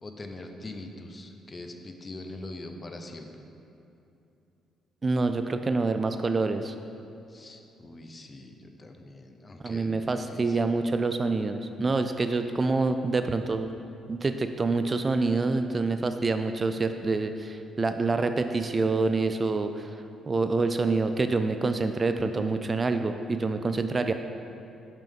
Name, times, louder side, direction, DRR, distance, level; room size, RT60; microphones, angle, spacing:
voice 1, 0.0-3.3 7.3-10.6, left 2 dB, 30° left, 5 dB, 0.6 m, -43 dB
voice 2, 5.0-6.7 9.6-13.7 14.1-20.0 20.3-24.1, right 3 dB, 30° right, 8 dB, 0.3 m, -26 dB
6.0 x 5.6 x 5.3 m, 2.8 s
cardioid pair, 90°, 0 cm